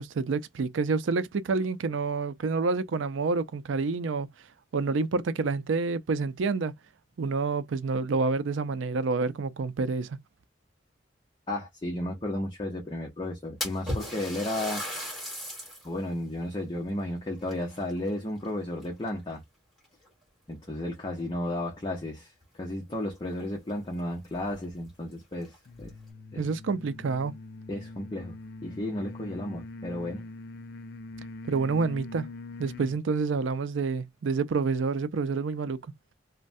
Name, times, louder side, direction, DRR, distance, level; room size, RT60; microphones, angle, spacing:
voice 1, 0.0-4.3 4.7-6.7 7.2-10.2 26.4-27.3 31.5-32.3 32.6-35.8, right 4 dB, 90° right, 0.4 m, -28 dB
voice 2, 11.5-14.8 15.8-19.4 20.5-22.3 22.6-25.5 25.8-25.9 26.3-26.4 27.7-28.4 28.6-30.3, left 1 dB, 25° left, 0.8 m, -33 dB
Splash splatter, 13.6-15.9 16.4-16.5 17.4-18.5 18.8-19.3 20.1-20.2 20.6-20.7 22.9-23.0 23.3-23.4 24.0-24.1 24.5-24.6 25.3-25.9, equal, ahead, 1.7 m, -36 dB
sound 1, 25.6-33.0, left 2 dB, 55° left, 0.4 m, -43 dB
3.1 x 2.2 x 2.6 m
head